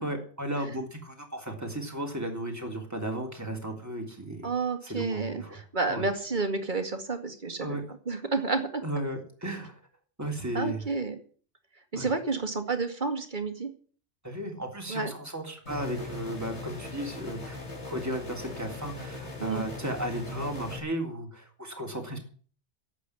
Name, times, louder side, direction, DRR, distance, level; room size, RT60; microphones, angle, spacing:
voice 1, 0.0-4.5 4.8-5.6 5.9-6.1 7.6-7.8 8.8-9.8 10.2-10.8 11.9-12.1 14.2-17.6 17.9-22.2, right 1 dB, 15° right, 2 dB, 3.4 m, -35 dB
voice 2, 4.4-7.8 8.1-8.8 10.5-11.2 11.9-13.7 14.9-15.1 19.4-19.6, right 3 dB, 45° right, 7 dB, 2.2 m, -30 dB
sound 1, 15.7-20.8, left 2 dB, 80° left, 3.4 m, -39 dB
11.5 x 8.5 x 9.8 m, 0.43 s
omnidirectional pair, 1.1 m